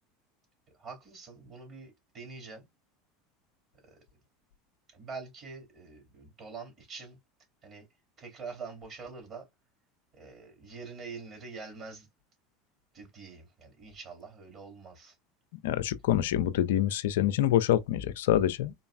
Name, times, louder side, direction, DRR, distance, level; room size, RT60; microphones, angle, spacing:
voice 1, 0.7-2.7 3.9-4.0 4.9-7.2 7.6-7.9 8.2-9.5 10.1-12.1 12.9-15.2, right 4 dB, 40° right, 2.7 m, -45 dB
voice 2, 15.6-18.7, left 11 dB, 70° left, 0.4 m, -26 dB
4.0 x 3.0 x 2.2 m
hypercardioid pair, 80°, 0 cm